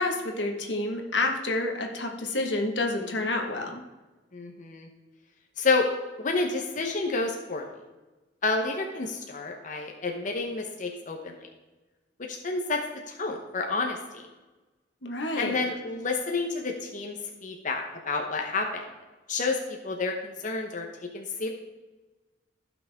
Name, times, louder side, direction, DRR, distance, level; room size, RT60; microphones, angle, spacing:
voice 1, 0.0-3.8 15.0-15.6, left 2 dB, 85° left, 3 dB, 1.6 m, -29 dB
voice 2, 4.3-4.9 5.6-5.9 6.2-7.7 8.4-11.3 12.3-12.8 13.1-14.3 15.4-17.2 17.4-18.9 19.3-20.9 21.1-21.5, left 3 dB, 45° left, 2 dB, 1.0 m, -29 dB
15.0 x 6.1 x 3.6 m, 1.2 s
head